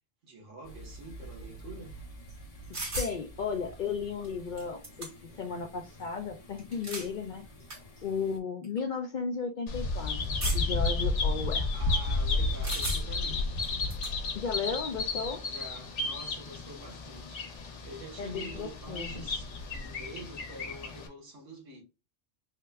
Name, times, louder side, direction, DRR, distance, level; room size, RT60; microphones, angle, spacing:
voice 1, 0.2-2.0 11.7-13.5 15.4-21.8, right 2 dB, 90° right, 1.5 m, -47 dB
sound 1, 0.6-8.4, equal, 35° left, 0.8 m, -49 dB
sound 2, 2.7-3.2 4.2-4.3 4.6-5.4 6.6-7.1 7.7-7.8 8.6-8.8 10.4-10.8 12.6-13.2 13.6-14.1, equal, 65° right, 2.1 m, -35 dB
voice 2, 3.0-7.4 8.0-11.7 14.4-15.4 18.2-19.2, left 5 dB, 60° left, 0.5 m, -35 dB
Bird vocalization bird call bird song, 9.7-21.1, left 3 dB, 75° left, 1.2 m, -32 dB
3.8 x 2.1 x 3.4 m
omnidirectional pair, 1.2 m